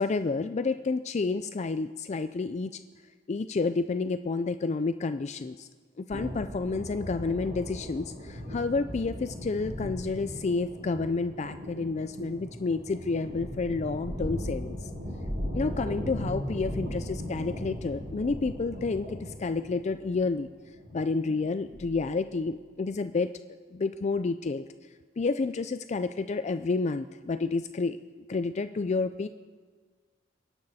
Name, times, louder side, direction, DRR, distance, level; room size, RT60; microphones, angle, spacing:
voice 1, 0.0-2.7 3.3-5.7 6.0-14.8 15.5-20.5 20.9-23.3 23.7-24.6 25.2-28.0 28.3-29.3, left 3 dB, 35° left, 10 dB, 0.4 m, -30 dB
sound 1, 6.1-22.3, equal, 75° right, 5.9 m, -38 dB
27.5 x 11.5 x 4.2 m, 1.5 s
head